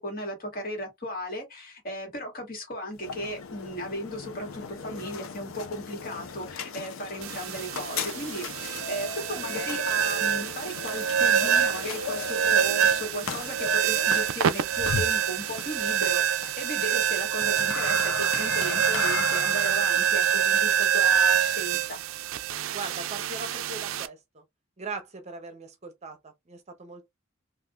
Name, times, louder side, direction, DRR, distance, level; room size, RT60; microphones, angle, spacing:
voice 1, 0.0-22.0, equal, 50° left, 1.7 m, -36 dB
sound 1, 2.9-22.0, left 5 dB, 85° left, 0.6 m, -37 dB
sound 2, 7.2-24.1, right 8 dB, 80° right, 0.4 m, -26 dB
voice 2, 22.7-24.4 24.8-27.1, right 3 dB, 35° right, 0.7 m, -40 dB
3.5 x 2.5 x 2.4 m
head